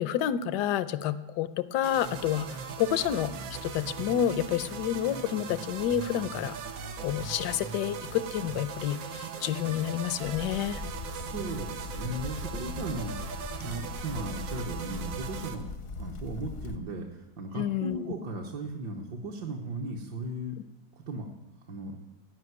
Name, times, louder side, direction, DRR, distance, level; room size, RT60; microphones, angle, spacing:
voice 1, 0.0-6.6 7.0-10.8 17.5-18.1, left 10 dB, 70° left, 14 dB, 1.2 m, -29 dB
sound 1, 1.8-15.5, right 6 dB, 85° right, 1.8 m, -39 dB
sound 2, 10.2-16.8, left 3 dB, 50° left, 0.7 m, -40 dB
voice 2, 11.1-15.7 16.0-20.6 21.1-21.3 21.7-22.2, right 2 dB, 65° right, 0 dB, 1.7 m, -37 dB
17.0 x 5.8 x 9.4 m, 1.0 s
omnidirectional pair, 2.0 m